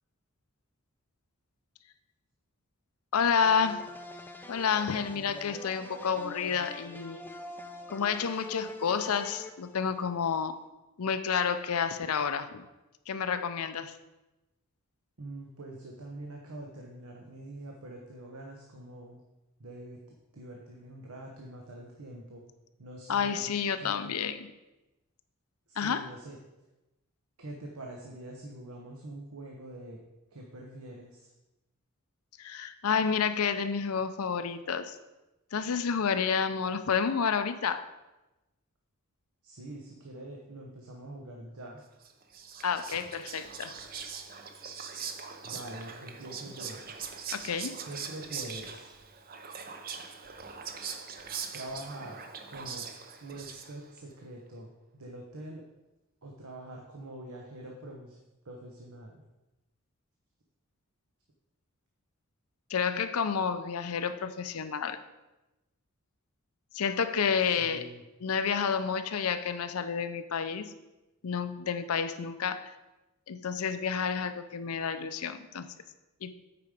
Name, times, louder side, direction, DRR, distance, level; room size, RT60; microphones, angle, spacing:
voice 1, 3.1-3.8 4.5-7.2 7.9-10.6 11.0-12.6 13.1-13.9 23.1-24.4 25.8-26.1 32.4-35.0 35.5-37.8 42.6-43.7 47.3-47.8 62.7-65.0 66.7-67.9 68.2-70.7 71.2-72.7 73.3-75.7 76.2-76.3, left 6 dB, 85° left, 10 dB, 0.6 m, -30 dB
sound 1, 3.4-10.4, left 2 dB, 10° left, 0.4 m, -45 dB
voice 2, 15.2-19.2 19.6-22.4 22.8-23.4 23.8-24.1 25.7-26.4 27.4-30.0 30.3-31.3 39.4-41.9 45.4-46.8 47.8-48.9 51.5-52.2 52.5-52.9 53.2-55.6 56.2-58.2 58.4-59.2 67.6-68.0, right 1 dB, 85° right, 0 dB, 1.1 m, -44 dB
Whispering, 42.0-54.0, right 6 dB, 40° right, 0.7 m, -42 dB
8.6 x 5.0 x 5.1 m, 1.0 s
head